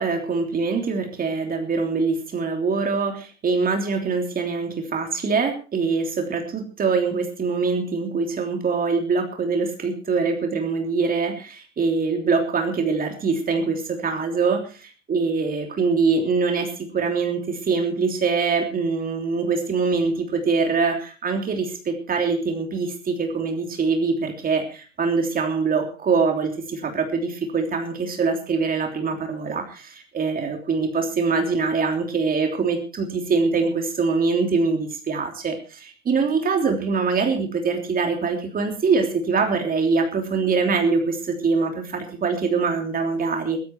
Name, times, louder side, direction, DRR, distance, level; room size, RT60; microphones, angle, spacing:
voice 1, 0.0-43.6, right 4 dB, 25° right, 3 dB, 3.3 m, -23 dB
16.0 x 14.5 x 4.5 m, 0.38 s
hypercardioid pair, 110°, 36 cm